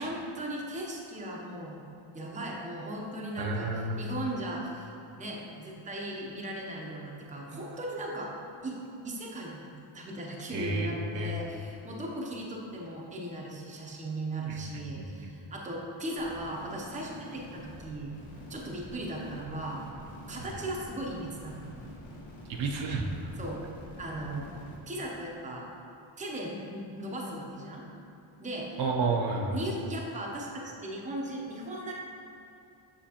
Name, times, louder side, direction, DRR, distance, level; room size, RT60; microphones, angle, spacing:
voice 1, 0.0-1.8 2.1-4.9 5.2-8.3 8.6-8.8 9.0-9.7 9.9-18.1 18.5-19.8 20.3-21.9 23.4-23.6 24.0-24.5 24.9-25.7 26.2-27.9 28.4-28.7 29.5-31.9, right 1 dB, 15° right, -2 dB, 0.7 m, -37 dB
voice 2, 3.4-4.1 10.5-11.3 14.5-14.6 15.0-15.3 22.5-23.3 28.8-29.6, right 3 dB, 70° right, 1 dB, 0.8 m, -31 dB
sound 1, 16.2-24.8, left 1 dB, 75° left, 1.3 m, -47 dB
7.3 x 5.4 x 2.9 m, 2.8 s
cardioid pair, 150°, 47 cm